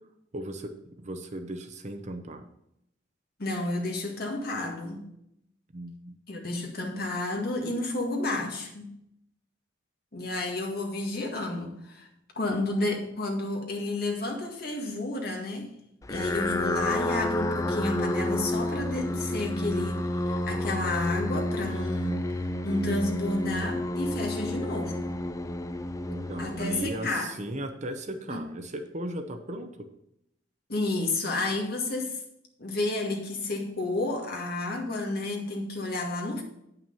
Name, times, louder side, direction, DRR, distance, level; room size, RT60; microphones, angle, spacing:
voice 1, 0.3-2.4 5.7-6.4 26.1-29.9, right 1 dB, 40° right, 0.8 m, -37 dB
voice 2, 3.4-5.0 6.3-8.9 10.1-12.1 12.4-15.7 16.1-25.1 26.4-27.3 28.3-28.4 30.7-32.2 32.6-36.4, left 2 dB, 55° left, 1.8 m, -31 dB
sound 1, 16.0-27.5, left 1 dB, 15° left, 0.4 m, -30 dB
9.2 x 5.9 x 5.5 m
head